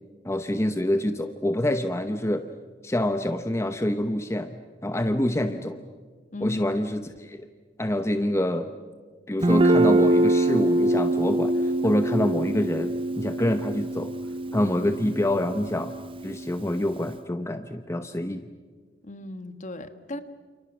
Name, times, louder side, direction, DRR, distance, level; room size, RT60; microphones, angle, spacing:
voice 1, 0.2-2.5 2.8-5.8 6.4-7.5 7.8-8.7 9.3-14.1 14.5-15.9 16.2-18.5, left 1 dB, 15° left, 8 dB, 0.9 m, -26 dB
voice 2, 6.3-6.8 19.0-20.2, left 2 dB, 45° left, 10 dB, 1.5 m, -35 dB
Guitar, 9.4-17.1, right 1 dB, 30° right, 1.0 m, -24 dB
29.5 x 28.5 x 6.2 m, 1.5 s
head